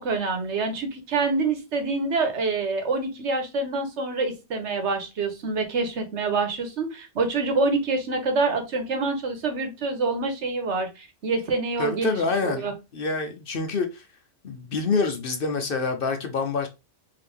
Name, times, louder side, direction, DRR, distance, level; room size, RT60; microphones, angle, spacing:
voice 1, 0.0-12.2 12.4-12.7, right 3 dB, 70° right, 1.2 m, -26 dB
voice 2, 11.8-14.1 14.4-16.7, left 4 dB, 55° left, 0.7 m, -27 dB
3.8 x 2.8 x 3.3 m
omnidirectional pair, 1.2 m